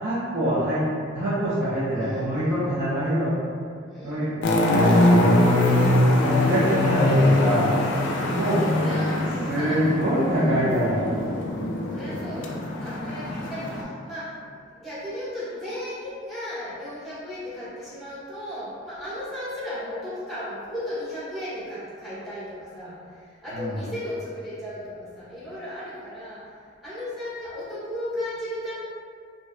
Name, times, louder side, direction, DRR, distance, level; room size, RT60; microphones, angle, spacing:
voice 1, 0.0-0.8 1.1-3.4 4.0-5.4 6.2-7.7 8.3-8.6 9.2-11.1 23.5-23.8, equal, 50° right, -9 dB, 0.4 m, -25 dB
voice 2, 2.0-2.3 3.9-4.3 8.6-10.0 10.4-10.6 11.9-14.3 14.7-26.4 26.8-28.8, left 1 dB, ahead, -12 dB, 0.8 m, -35 dB
sound 1, 4.4-13.8, left 1 dB, 65° left, 0.3 m, -22 dB
2.6 x 2.1 x 2.4 m, 2.2 s
head